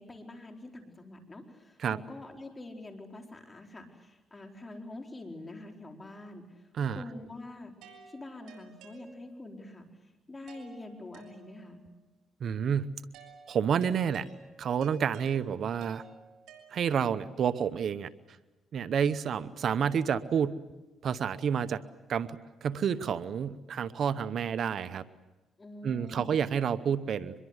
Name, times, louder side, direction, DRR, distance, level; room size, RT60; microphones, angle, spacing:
voice 1, 0.0-7.7 8.1-11.8 25.6-26.5, left 2 dB, 25° left, 3 dB, 4.5 m, -46 dB
sound 1, 7.8-9.6 10.5-11.9 13.1-17.2, right 5 dB, 80° right, 7.1 m, -54 dB
voice 2, 12.4-12.9 13.5-14.2 14.6-16.0 16.7-18.1 18.7-20.5 21.0-21.8 22.1-25.0 25.8-27.3, right 7 dB, 60° right, 14 dB, 0.9 m, -29 dB
24.0 x 22.5 x 8.1 m, 1.1 s
cardioid pair, 90°, 0 cm